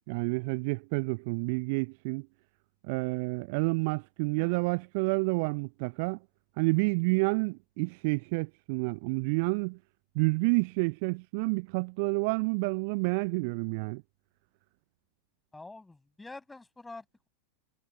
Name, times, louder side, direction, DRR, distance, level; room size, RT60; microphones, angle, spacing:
voice 1, 0.1-2.3 2.8-6.2 6.6-9.8 10.1-14.0, right 30 dB, 45° right, 0.6 m, -29 dB
voice 2, 15.5-17.3, left 2 dB, 10° left, 7.5 m, -47 dB
figure-of-eight pair, 90°, 0 cm